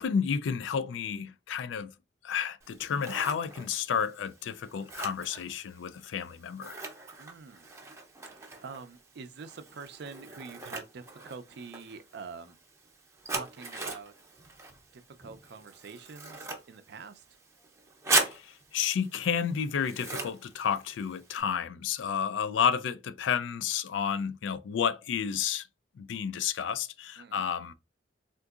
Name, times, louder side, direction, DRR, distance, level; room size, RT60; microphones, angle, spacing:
voice 1, 0.0-1.9 2.2-6.8 18.2-25.7 26.0-27.7, left 7 dB, 90° left, 0.3 m, -31 dB
Scissors, 2.6-21.4, right 3 dB, 15° right, 0.6 m, -39 dB
voice 2, 7.2-7.7 8.3-12.6 13.3-14.1 14.9-17.2 27.2-27.5, right 5 dB, 65° right, 0.4 m, -46 dB
3.7 x 2.5 x 2.3 m
head